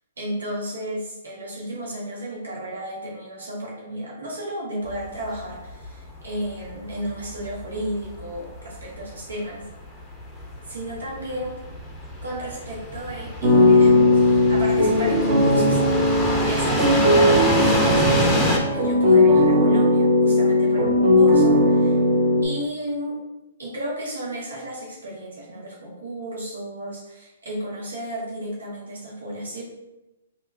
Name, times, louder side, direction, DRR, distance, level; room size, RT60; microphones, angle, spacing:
voice 1, 0.2-9.7 10.6-11.5 12.2-15.8 16.4-22.0 22.4-23.2 23.6-29.6, right 1 dB, 85° right, -3 dB, 1.3 m, -33 dB
sound 1, 4.9-18.6, equal, ahead, 0.7 m, -27 dB
sound 2, 13.4-22.4, left 1 dB, 35° right, 1.1 m, -17 dB
3.3 x 2.8 x 4.5 m, 0.96 s
hypercardioid pair, 135°, 0 cm